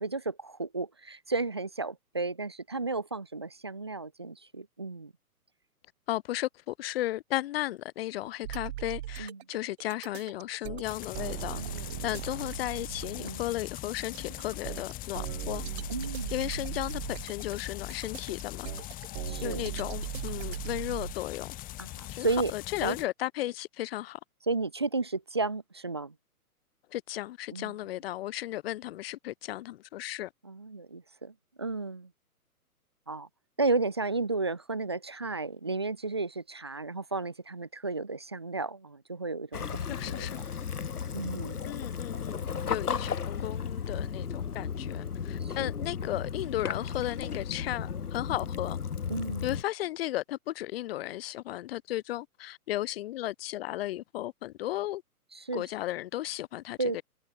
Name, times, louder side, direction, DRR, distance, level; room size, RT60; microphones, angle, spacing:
voice 1, 0.0-5.1 9.2-9.4 11.6-12.1 13.2-13.4 15.9-16.3 19.3-19.7 21.8-22.5 22.8-23.0 24.5-26.1 27.5-27.7 30.4-31.3 31.6-32.1 33.1-33.3 33.6-39.6 40.1-40.3 41.1-41.6 42.5-42.6 45.4-45.7 49.1-49.5 55.3-55.6 56.8-57.0, right 3 dB, 20° right, 0.3 m, -33 dB
voice 2, 6.1-11.6 12.0-15.6 16.3-18.7 19.4-21.5 22.1-24.2 26.9-30.3 39.9-40.4 41.7-48.8 49.4-55.0 55.5-57.0, left 15 dB, 40° left, 2.1 m, -35 dB
sound 1, 8.4-21.1, right 14 dB, 45° right, 4.1 m, -38 dB
sound 2, 10.8-23.1, left 16 dB, 20° left, 1.7 m, -41 dB
Waves surf / Splash splatter / Trickle dribble, 39.5-49.6, left 6 dB, 80° left, 1.8 m, -34 dB
figure-of-eight pair, 130°, 45 cm